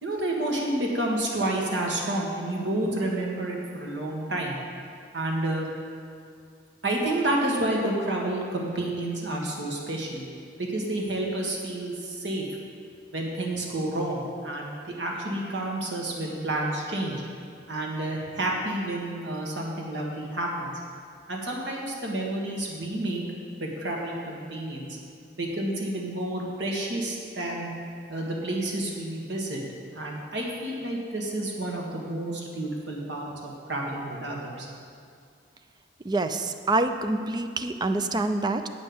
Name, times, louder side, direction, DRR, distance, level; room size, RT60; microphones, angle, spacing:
voice 1, 0.0-4.6 5.1-5.7 6.8-10.2 10.6-12.4 13.1-17.2 17.7-20.7 21.3-23.3 23.6-24.9 25.4-27.7 28.1-29.6 29.9-34.7, right 1 dB, 80° right, -1 dB, 1.7 m, -30 dB
voice 2, 36.0-38.7, right 2 dB, 25° right, 7 dB, 0.4 m, -26 dB
8.8 x 5.4 x 7.8 m, 2.2 s
head